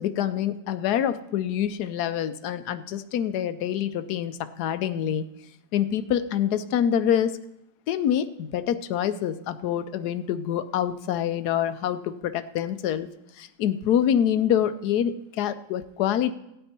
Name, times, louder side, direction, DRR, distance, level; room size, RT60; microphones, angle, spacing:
voice 1, 0.0-5.3 5.7-7.4 7.9-13.1 13.4-16.3, left 9 dB, 85° left, 12 dB, 1.2 m, -26 dB
16.5 x 8.9 x 4.4 m, 0.87 s
omnidirectional pair, 1.7 m